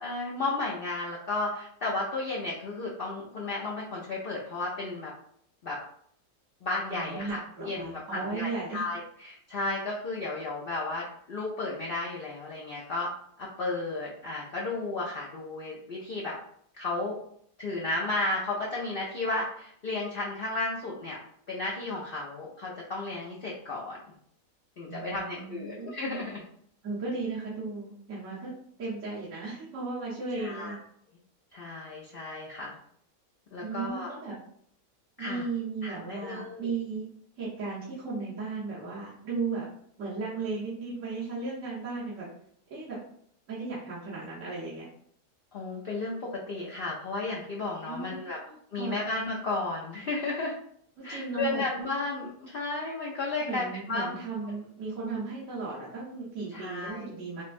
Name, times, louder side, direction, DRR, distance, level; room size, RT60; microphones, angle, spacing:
voice 1, 0.0-5.1 5.6-5.8 6.6-13.1 13.4-16.3 16.8-17.2 17.6-21.2 21.5-24.0 24.8-26.4 30.4-30.8 31.5-32.8 33.5-34.1 35.2-35.4 35.8-36.7 45.5-48.4 48.7-50.5 51.0-54.1 56.5-57.1, left 2 dB, 70° left, -4 dB, 0.5 m, -33 dB
voice 2, 6.9-8.8 24.9-25.9 26.8-28.5 28.8-30.8 33.6-34.4 35.2-37.1 37.4-39.7 40.0-42.3 42.7-43.0 43.5-44.9 47.9-49.0 51.0-51.6 53.4-57.4, right 4 dB, 50° right, -8 dB, 1.3 m, -35 dB
5.4 x 2.2 x 2.6 m, 0.65 s
omnidirectional pair, 1.8 m